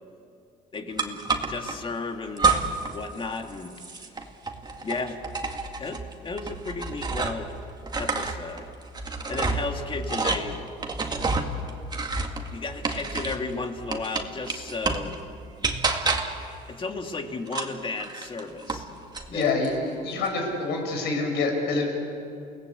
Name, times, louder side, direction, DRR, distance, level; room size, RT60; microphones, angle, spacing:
voice 1, 0.7-2.6 2.9-3.7 4.8-5.2 5.8-7.5 8.0-8.7 9.3-10.7 10.9-11.0 12.5-15.2 16.7-18.9 19.3-19.5, left 3 dB, 30° left, 5 dB, 2.2 m, -34 dB
sound 1, 1.0-1.8 2.4-3.0 3.2-7.5 7.8-13.5 13.9-15.1 15.6-16.5 17.5-18.9 19.1-19.7, right 4 dB, 25° right, 2.2 m, -29 dB
voice 2, 19.3-21.8, left 3 dB, 80° left, 2 dB, 6.8 m, -26 dB
29.5 x 18.5 x 8.4 m, 2.6 s
cardioid pair, 110°, 17 cm